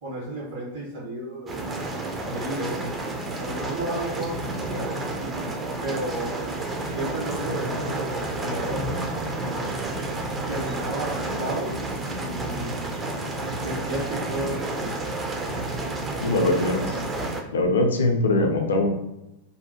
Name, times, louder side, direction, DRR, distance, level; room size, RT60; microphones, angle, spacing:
voice 1, 0.0-1.6 2.2-2.9 3.4-4.9 5.8-8.8 10.5-11.8 12.1-12.7 13.6-15.0 16.1-17.1, right 1 dB, 60° right, -8 dB, 1.3 m, -33 dB
sound 1, 1.5-17.4, right 2 dB, 20° right, 0.4 m, -30 dB
voice 2, 16.2-16.8 17.5-18.9, left 2 dB, 65° left, 3 dB, 0.4 m, -21 dB
2.7 x 2.1 x 2.8 m, 0.92 s
figure-of-eight pair, 90°, 0 cm